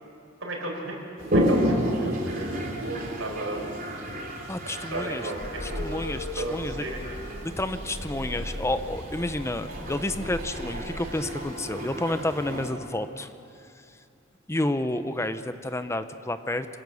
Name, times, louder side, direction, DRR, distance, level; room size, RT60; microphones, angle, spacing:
voice 1, 0.4-1.0 1.3-3.6 4.8-6.0 6.4-7.0, right 1 dB, 75° right, -2 dB, 5.2 m, -34 dB
Toilet flush, 1.2-12.7, equal, 45° right, 3.4 m, -31 dB
voice 2, 4.5-5.3 5.6-6.8 7.4-13.3 14.5-16.7, left 1 dB, 15° left, 10 dB, 0.7 m, -30 dB
sound 1, 5.4-11.0, left 1 dB, 65° left, 2.1 m, -38 dB
26.0 x 17.0 x 7.0 m, 2.6 s
head